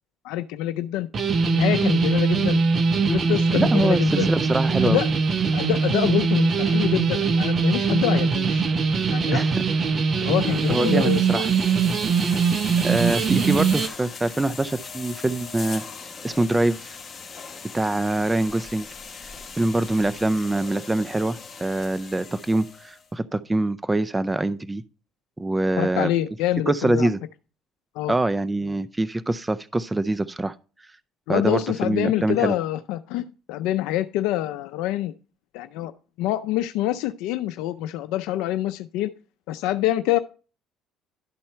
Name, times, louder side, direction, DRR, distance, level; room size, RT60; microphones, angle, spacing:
voice 1, 0.2-1.1 1.5-2.6 3.0-4.3 4.8-5.1 5.5-8.6 9.1-9.4 10.2-11.3 25.8-27.1 27.9-28.1 31.3-35.1 35.5-35.9 36.2-39.1 39.5-40.2, left 14 dB, 85° left, 0.4 m, -26 dB
sound 1, 1.1-13.9, right 5 dB, 40° right, 0.7 m, -22 dB
voice 2, 3.5-5.0 9.3-9.6 10.2-10.3 10.7-11.5 12.8-15.8 16.2-17.0 17.7-18.9 19.6-24.8 25.4-26.1 26.7-27.2 28.1-30.5 31.3-32.6, right 2 dB, 10° right, 0.4 m, -24 dB
sound 2, 10.3-23.1, left 5 dB, 30° left, 1.7 m, -39 dB
11.5 x 4.3 x 5.6 m
cardioid pair, 110°, 0 cm